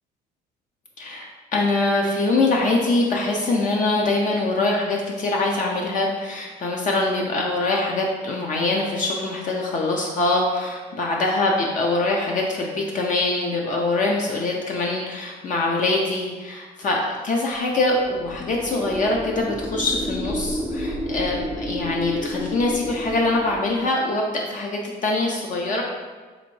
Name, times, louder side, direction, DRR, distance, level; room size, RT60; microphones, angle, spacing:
voice 1, 1.0-25.8, left 2 dB, 50° left, -1 dB, 0.6 m, -23 dB
sound 1, 17.8-24.0, equal, ahead, 0.4 m, -31 dB
3.9 x 3.4 x 3.1 m, 1.4 s
cardioid pair, 110°, 17 cm